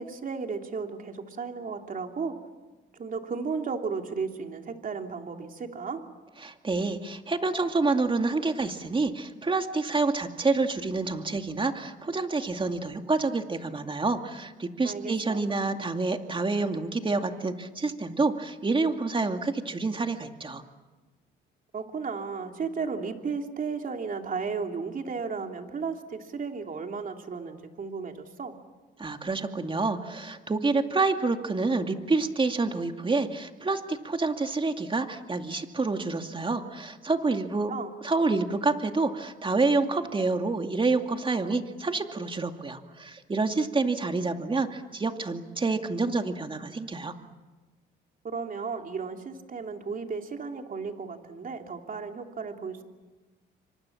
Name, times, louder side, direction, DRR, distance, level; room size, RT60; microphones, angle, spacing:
voice 1, 0.0-2.4 2.9-6.0 14.8-15.5 21.7-28.6 37.7-37.9 48.2-52.8, right 5 dB, 45° right, 4 dB, 3.1 m, -34 dB
voice 2, 6.4-20.6 29.0-37.7 38.0-47.1, right 3 dB, 25° right, 5 dB, 2.4 m, -28 dB
28.0 x 25.0 x 7.3 m, 1.3 s
cardioid pair, 90°, 20 cm